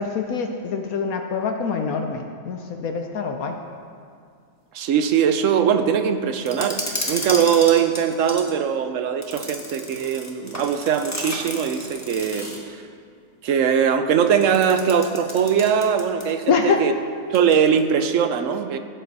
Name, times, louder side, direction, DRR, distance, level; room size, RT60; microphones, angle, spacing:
voice 1, 0.0-3.6 16.5-16.8, left 5 dB, 70° left, 4 dB, 1.2 m, -25 dB
voice 2, 4.7-6.8 7.1-12.5 13.4-16.9 17.3-18.8, right 7 dB, 65° right, 9 dB, 1.0 m, -21 dB
sound 1, 6.5-8.5 9.2-12.7 14.4-16.4 16.7-16.8 17.3-17.8, left 1 dB, 10° left, 1.1 m, -33 dB
16.5 x 7.7 x 4.1 m, 2.2 s
omnidirectional pair, 1.6 m